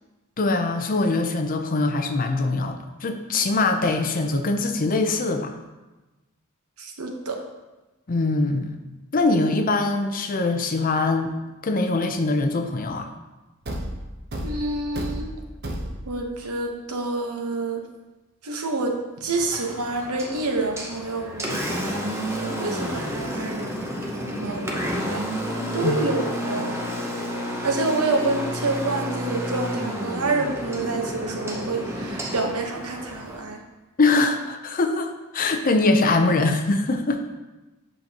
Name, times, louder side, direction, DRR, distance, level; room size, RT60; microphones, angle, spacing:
voice 1, 0.4-5.6 8.1-8.8 9.1-11.3 11.6-13.1 25.8-25.9 34.0-37.2, left 3 dB, 40° left, 6 dB, 0.6 m, -22 dB
voice 2, 6.8-7.4 14.4-15.3 16.1-17.8 18.4-25.3 25.7-26.7 27.6-33.6, right 3 dB, 90° right, 3 dB, 1.0 m, -28 dB
Thump thud, 13.6-16.3, right 1 dB, 45° right, 0.8 m, -32 dB
Engine, 19.3-33.4, equal, 10° right, 0.7 m, -31 dB
8.2 x 5.9 x 2.9 m, 1.1 s
head